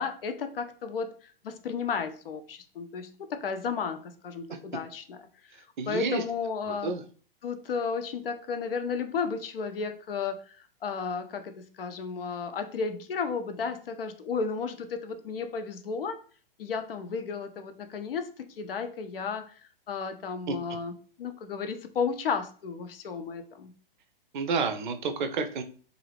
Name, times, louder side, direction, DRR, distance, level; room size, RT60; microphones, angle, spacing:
voice 1, 0.0-5.2 5.9-6.9 7.4-16.2 16.6-19.5 19.9-23.7, left 5 dB, 70° left, 8 dB, 0.5 m, -33 dB
voice 2, 5.8-6.2 6.7-7.0 20.5-20.6 24.3-25.6, right 4 dB, 55° right, 7 dB, 0.5 m, -30 dB
2.6 x 2.4 x 3.3 m, 0.42 s
figure-of-eight pair, 115°, 29 cm